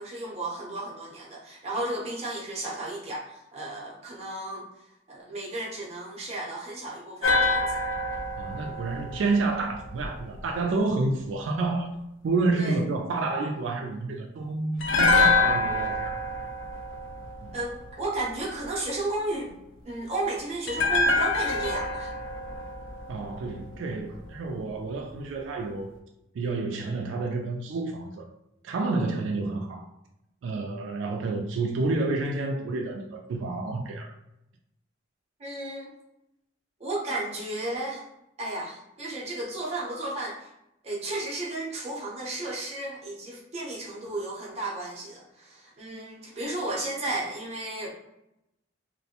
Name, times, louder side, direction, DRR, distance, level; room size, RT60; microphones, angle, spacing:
voice 1, 0.0-4.7 5.1-7.8 12.5-12.8 17.5-19.5 19.8-22.1 35.4-35.9 36.8-38.0 38.4-40.5 40.8-47.9, right 2 dB, 35° right, 0.7 m, -33 dB
sound 1, 7.2-10.4 14.8-18.0 20.7-23.9 24.1-24.3, left 3 dB, 85° left, 0.4 m, -26 dB
voice 2, 8.4-11.9 12.2-16.2 17.4-17.6 23.1-25.9 26.3-28.3 28.6-29.9 30.4-34.1, right 3 dB, 80° right, 0.3 m, -29 dB
2.5 x 2.1 x 2.8 m
head